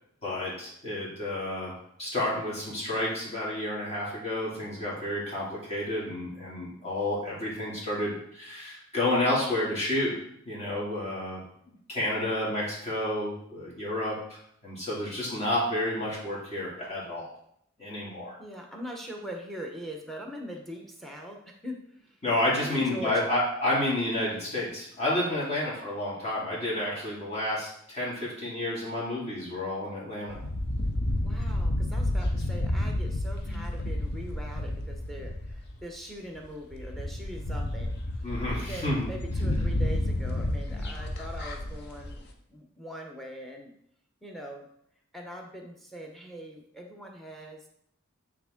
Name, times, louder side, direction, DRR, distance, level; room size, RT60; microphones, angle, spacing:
voice 1, 0.2-1.7 2.0-11.4 11.9-14.2 14.6-17.3 17.8-18.4 22.2-30.4 38.2-39.1, left 1 dB, 30° left, -6 dB, 2.5 m, -30 dB
voice 2, 18.4-22.2 22.6-23.3 25.4-25.7 31.2-38.0 38.5-42.2 42.5-43.7 44.2-44.7 45.1-47.6, equal, ahead, 1 dB, 1.0 m, -42 dB
sound 1, 30.3-35.8 36.4-36.5 36.7-42.2, left 1 dB, 50° left, 0.8 m, -30 dB
8.8 x 3.6 x 3.7 m, 0.71 s
head